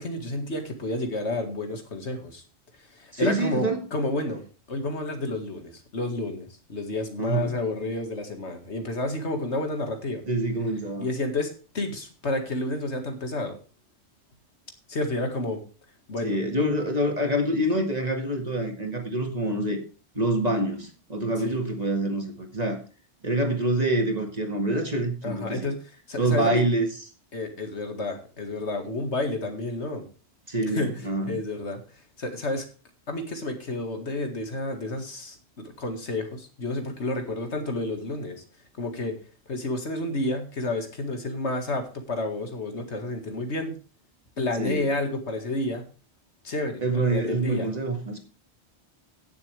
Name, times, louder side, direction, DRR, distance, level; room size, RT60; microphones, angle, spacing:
voice 1, 0.0-2.4 2.9-10.2 11.0-13.6 14.9-15.6 16.1-16.4 21.4-21.6 25.2-25.8 26.1-26.6 27.3-30.1 30.7-30.9 31.3-31.8 32.2-32.7 33.1-38.4 38.8-39.2 39.5-43.8 44.4-45.9 46.4-47.7, left 2 dB, 75° left, 5 dB, 2.2 m, -30 dB
voice 2, 3.1-3.8 7.2-7.5 10.3-11.1 16.2-19.8 20.2-22.8 23.2-25.7 26.2-26.9 30.5-31.3 44.6-44.8 46.8-48.2, right 1 dB, 35° right, 3 dB, 2.0 m, -26 dB
17.0 x 7.1 x 3.4 m, 0.35 s
omnidirectional pair, 1.2 m